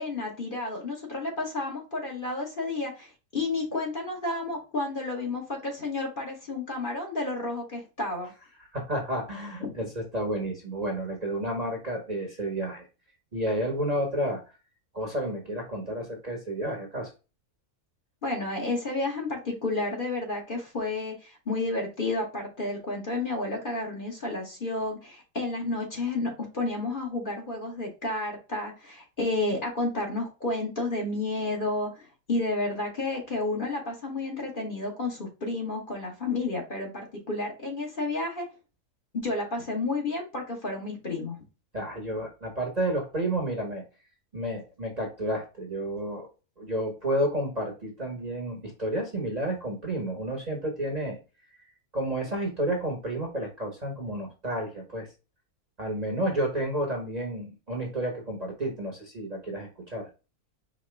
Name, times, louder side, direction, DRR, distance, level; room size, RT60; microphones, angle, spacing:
voice 1, 0.0-8.3 9.6-9.9 18.2-38.4 39.1-41.4, left 2 dB, 35° left, -1 dB, 1.4 m, -31 dB
voice 2, 8.7-12.9 13.3-14.4 14.9-17.1 41.7-43.8 44.3-46.3 46.6-51.2 51.9-55.1 55.8-60.1, right 1 dB, 30° right, 1 dB, 1.1 m, -31 dB
4.9 x 2.9 x 3.3 m, 0.30 s
omnidirectional pair, 1.6 m